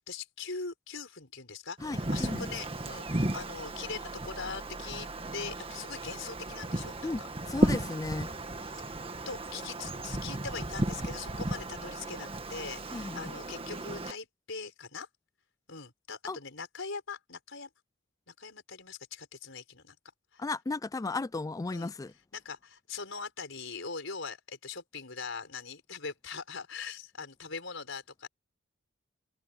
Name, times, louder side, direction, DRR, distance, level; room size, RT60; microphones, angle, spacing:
voice 1, 0.0-7.3 7.6-7.8 8.4-9.0 9.3-15.1 15.7-17.7 18.4-20.0 20.3-20.4 21.7-21.9 22.3-28.3, left 5 dB, 65° left, 5.8 m, -42 dB
voice 2, 1.8-2.5 7.0-7.2 7.5-8.3 12.9-13.3 16.3-16.4 20.4-22.1, left 3 dB, 15° left, 0.3 m, -35 dB
Wind, 1.8-14.1, right 1 dB, 25° right, 1.7 m, -34 dB
open air
head